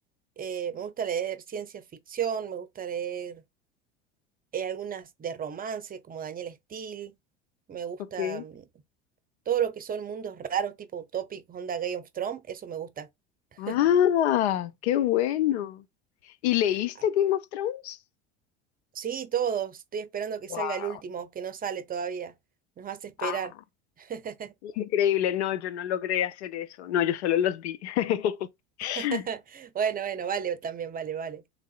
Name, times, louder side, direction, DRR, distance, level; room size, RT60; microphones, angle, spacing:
voice 1, 0.4-3.4 4.5-7.1 7.7-8.6 9.5-13.1 13.7-13.8 17.0-17.1 18.9-22.3 22.8-23.5 24.0-24.5 28.8-31.4, right 8 dB, 25° right, 0.7 m, -33 dB
voice 2, 13.6-15.8 16.4-18.0 20.5-20.9 23.2-23.4 24.8-28.4 28.8-29.2, left 11 dB, 75° left, 0.6 m, -26 dB
3.7 x 3.4 x 2.3 m
hypercardioid pair, 80°, 33 cm